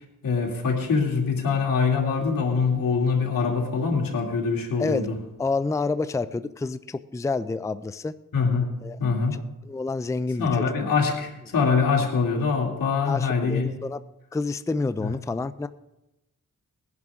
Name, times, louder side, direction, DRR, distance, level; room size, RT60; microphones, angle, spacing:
voice 1, 0.2-5.2 8.3-8.7 9.0-9.4 10.4-13.7 15.0-15.1, left 5 dB, 90° left, 0 dB, 2.6 m, -24 dB
voice 2, 4.8-8.1 8.8-9.0 9.3-10.7 11.5-11.7 13.0-14.0 14.3-15.7, left 3 dB, 10° left, 13 dB, 0.4 m, -29 dB
20.0 x 11.0 x 3.6 m, 0.95 s
wide cardioid pair, 95°, 33 cm